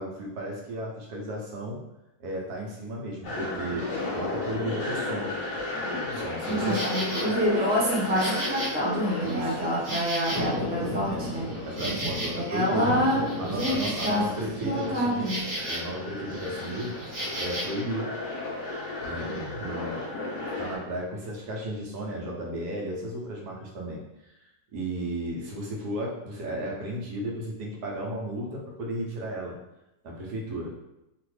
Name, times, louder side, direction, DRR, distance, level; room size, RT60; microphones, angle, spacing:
voice 1, 0.0-1.8 2.2-3.9 4.1-5.4 6.1-6.8 9.2-9.5 11.1-11.3 11.7-12.9 13.4-15.4 15.6-18.1 19.0-20.0 20.6-24.0 24.7-29.6 30.0-30.7, right 1 dB, 80° right, -2 dB, 1.2 m, -34 dB
sound 1, 3.2-20.8, left 2 dB, 45° left, 0.9 m, -33 dB
Insect, 6.4-7.3 7.8-10.8 11.1-16.0 16.3-17.8, right 1 dB, 55° right, 0.9 m, -36 dB
voice 2, 6.5-11.5 12.4-13.3 13.5-14.2 14.6-15.4, equal, 15° right, -6 dB, 0.4 m, -27 dB
2.8 x 2.5 x 3.1 m, 0.93 s
omnidirectional pair, 1.6 m